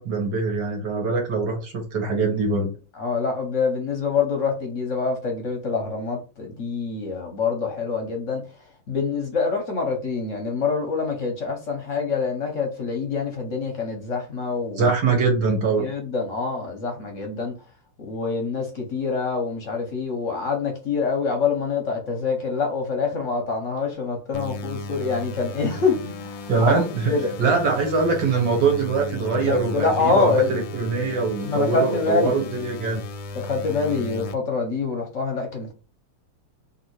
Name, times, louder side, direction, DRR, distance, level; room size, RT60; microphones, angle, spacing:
voice 1, 0.0-2.7 14.8-15.9 26.5-27.1 27.4-33.0, right 4 dB, 55° right, 1.6 m, -23 dB
voice 2, 2.9-8.4 8.9-14.9 15.8-17.5 18.0-27.3 29.5-30.6 31.4-32.3 33.3-35.7, left 4 dB, 55° left, 0.8 m, -25 dB
sound 1, 24.3-34.3, left 3 dB, 75° left, 1.2 m, -35 dB
3.6 x 2.8 x 4.5 m
omnidirectional pair, 2.4 m